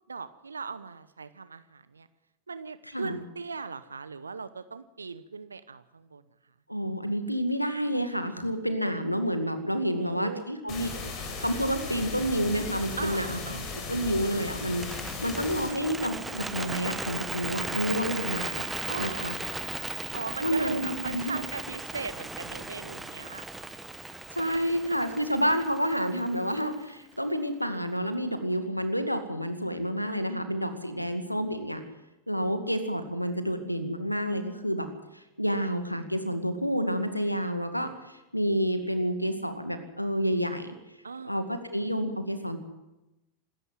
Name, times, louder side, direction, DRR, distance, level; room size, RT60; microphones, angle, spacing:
voice 1, 0.1-2.1 2.5-6.2 9.9-10.5 13.0-13.7 18.9-19.3 20.1-23.5 31.0-31.6 41.0-41.4, right 5 dB, 75° right, 13 dB, 0.9 m, -39 dB
voice 2, 6.7-10.9 11.2-13.4 13.9-18.6 19.0-19.3 20.4-21.4 24.3-31.8 32.3-34.9 35.1-40.8 41.3-42.6, equal, 90° left, 9 dB, 2.1 m, -29 dB
sound 1, 10.7-15.7, left 4 dB, 35° left, 5.2 m, -37 dB
Bird, 14.7-26.9, right 2 dB, 5° right, 1.3 m, -37 dB
25.5 x 13.5 x 7.6 m, 0.97 s
figure-of-eight pair, 90°, 0 cm